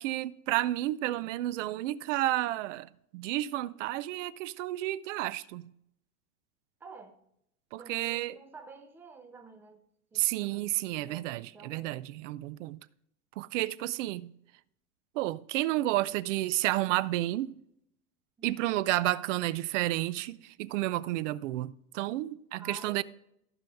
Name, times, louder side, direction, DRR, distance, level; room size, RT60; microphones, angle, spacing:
voice 1, 0.0-5.7 7.7-8.4 10.1-12.8 13.4-14.3 15.1-17.5 18.4-23.0, right 16 dB, 60° right, 0.5 m, -31 dB
voice 2, 6.8-7.2 7.8-9.8 10.1-12.0 18.4-18.8 22.6-23.0, right 4 dB, 5° right, 0.4 m, -50 dB
15.0 x 5.4 x 3.4 m
supercardioid pair, 155°, 43 cm